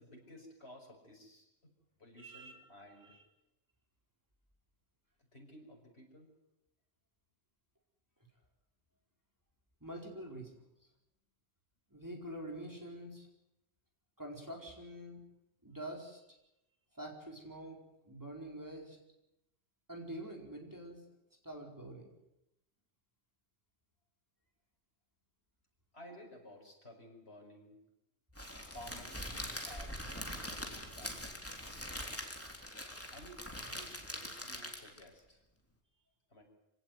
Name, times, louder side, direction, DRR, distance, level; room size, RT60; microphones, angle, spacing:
voice 1, 0.0-1.7 2.0-3.1 5.3-6.3 25.9-27.8 28.6-31.2 33.1-35.4 36.3-36.4, equal, 70° left, 1 dB, 5.9 m, -55 dB
voice 2, 2.2-3.2 9.8-10.6 11.9-13.3 14.2-15.2 15.6-16.4 16.9-19.0 19.9-21.0 21.4-22.1, right 1 dB, 15° right, 1 dB, 4.6 m, -46 dB
Crackle, 28.4-35.1, equal, 10° left, 3.5 m, -43 dB
25.5 x 17.5 x 9.4 m, 0.90 s
omnidirectional pair, 1.1 m